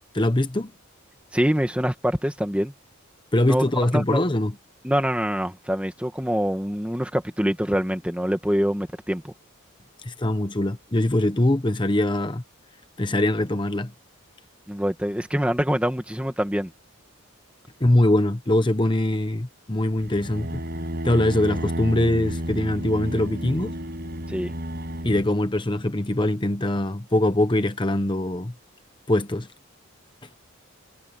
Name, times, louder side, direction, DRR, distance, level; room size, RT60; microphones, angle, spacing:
voice 1, 0.1-0.7 3.3-4.6 10.0-12.4 13.0-13.9 17.8-20.6 21.0-23.7 25.0-28.5 29.1-29.5, left 1 dB, 20° left, 0.9 m, -22 dB
voice 2, 1.3-2.7 3.4-3.6 3.9-4.2 4.8-9.3 14.7-16.7 24.3-24.5, equal, 5° right, 2.0 m, -25 dB
sound 1, 20.0-25.3, equal, 50° right, 6.3 m, -31 dB
head